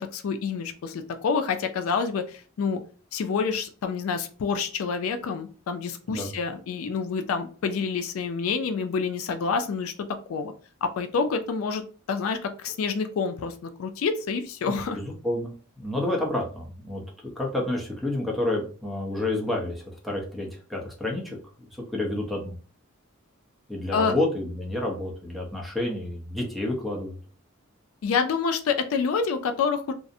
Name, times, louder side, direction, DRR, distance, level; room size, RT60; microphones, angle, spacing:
voice 1, 0.0-2.8 3.1-9.9 10.3-10.5 10.8-11.8 12.1-15.0 23.9-24.1 28.0-29.9, left 5 dB, 80° left, 8 dB, 0.3 m, -27 dB
voice 2, 14.7-17.0 17.4-21.4 21.9-22.6 23.7-27.2, left 1 dB, ahead, -3 dB, 0.6 m, -29 dB
2.5 x 2.0 x 2.6 m, 0.39 s
head